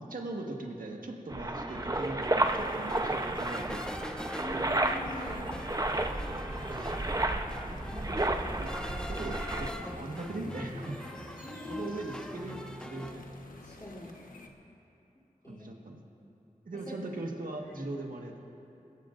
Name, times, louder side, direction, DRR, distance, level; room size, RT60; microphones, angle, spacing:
voice 1, 0.0-4.1 6.6-7.7 8.6-8.7 9.1-11.0 11.7-13.2 15.5-16.0 16.6-18.3, right 2 dB, 80° right, 0 dB, 1.5 m, -40 dB
sound 1, 1.3-9.7, right 2 dB, 25° right, 0.8 m, -32 dB
sound 2, 1.7-13.1, equal, 5° left, 1.0 m, -43 dB
sound 3, 2.3-14.5, left 2 dB, 75° left, 1.3 m, -49 dB
voice 2, 4.2-5.4 7.9-8.1 11.4-12.0 13.6-14.1 15.4-15.7 16.9-17.0 17.7-17.8, left 1 dB, 20° left, -8 dB, 3.2 m, -43 dB
27.5 x 15.5 x 2.6 m, 2.8 s
wide cardioid pair, 55°, 14 cm